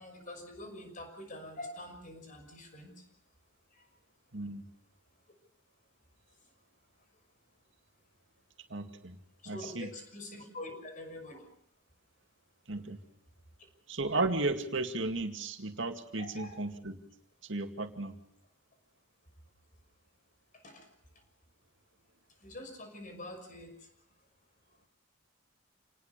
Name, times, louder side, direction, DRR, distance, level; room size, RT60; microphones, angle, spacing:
voice 1, 0.0-3.0 3.7-3.8 9.4-11.4 16.1-16.6 20.6-20.9 22.4-23.7, left 1 dB, 40° left, 5 dB, 6.1 m, -45 dB
voice 2, 4.3-4.7 8.7-9.2 9.5-9.9 12.7-13.0 13.9-17.0 17.4-18.2, right 2 dB, 70° right, 6 dB, 2.3 m, -34 dB
28.0 x 19.5 x 6.8 m, 0.64 s
head